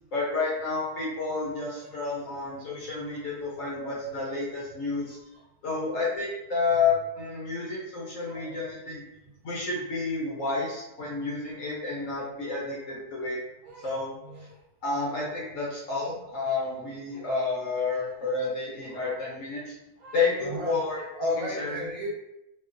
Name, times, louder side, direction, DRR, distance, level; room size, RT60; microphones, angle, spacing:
voice 1, 0.1-5.2 5.6-9.0 9.4-13.4 13.8-14.1 14.8-19.6 20.1-21.8, left 4 dB, 60° left, -5 dB, 1.0 m, -30 dB
voice 2, 1.7-4.1 4.9-5.5 5.8-6.0 6.7-6.8 8.2-8.7 13.6-14.0 14.2-14.6 14.9-15.0 15.6-15.7 16.0-16.2 16.6-16.7 17.0-17.2 17.9-18.4 18.8-19.3 20.0-22.1, right 2 dB, 60° right, -5 dB, 1.0 m, -42 dB
3.1 x 2.2 x 2.5 m, 0.89 s
omnidirectional pair, 1.8 m